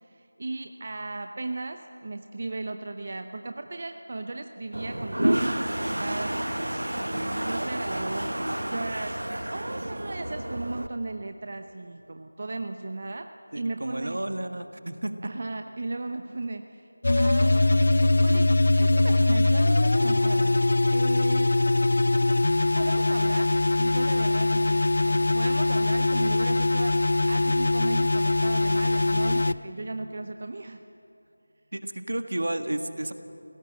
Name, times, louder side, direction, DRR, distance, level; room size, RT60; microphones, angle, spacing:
voice 1, 0.0-14.2 15.2-16.9 17.1-18.5 18.8-20.6 20.9-21.6 22.2-27.0 27.3-30.8, right 2 dB, 40° right, 7 dB, 0.8 m, -36 dB
Toilet flush, 4.7-10.9, right 1 dB, 85° right, 1.1 m, -30 dB
voice 2, 13.5-15.1 31.7-33.1, right 1 dB, 70° right, 8 dB, 1.6 m, -31 dB
sound 1, 17.0-29.5, left 2 dB, 50° left, 0.5 m, -22 dB
25.5 x 17.5 x 7.6 m, 2.8 s
figure-of-eight pair, 170°, 0 cm